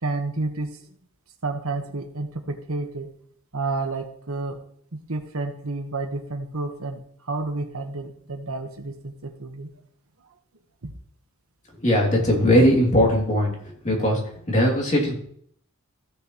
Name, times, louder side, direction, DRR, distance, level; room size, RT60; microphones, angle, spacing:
voice 1, 0.0-0.7 1.4-3.1 3.5-4.6 4.9-9.7 10.8-10.9, right 3 dB, 75° right, 5 dB, 1.2 m, -30 dB
voice 2, 11.8-14.2 14.5-15.2, equal, 35° left, -2 dB, 2.6 m, -19 dB
15.0 x 6.6 x 3.1 m, 0.64 s
head